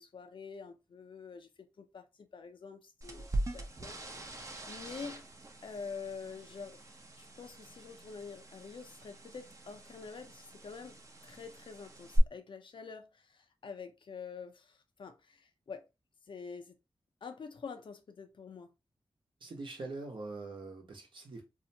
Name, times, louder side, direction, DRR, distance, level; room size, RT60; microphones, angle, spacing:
voice 1, 0.0-2.1 2.3-5.2 5.6-6.8 7.2-11.0 11.2-15.8 16.3-16.8 17.2-18.7, left 5 dB, 65° left, 0.5 m, -47 dB
sound 1, 3.0-12.2, right 2 dB, 35° right, 0.6 m, -42 dB
voice 2, 19.4-21.4, right 3 dB, 70° right, 0.9 m, -43 dB
2.7 x 2.1 x 2.7 m
cardioid pair, 50°, 9 cm